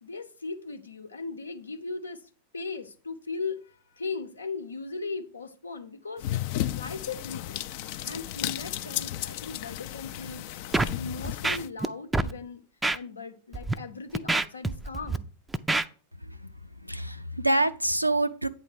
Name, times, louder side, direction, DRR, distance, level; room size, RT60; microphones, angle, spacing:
voice 1, 0.0-6.2 6.7-7.6 8.0-10.5 10.9-12.6 12.9-15.3, left 4 dB, 75° left, 0.8 m, -38 dB
sound 1, 6.2-11.7, left 13 dB, 50° left, 0.4 m, -34 dB
Scratching (performance technique), 10.7-10.9 11.2-11.9 12.1-12.3 12.8-13.0 13.5-13.7 14.1-15.2 15.5-15.8, right 2 dB, 10° right, 0.4 m, -26 dB
voice 2, 16.2-16.5 16.8-18.5, right 2 dB, 90° right, 0.5 m, -26 dB
8.9 x 3.6 x 6.2 m
figure-of-eight pair, 90°, 0 cm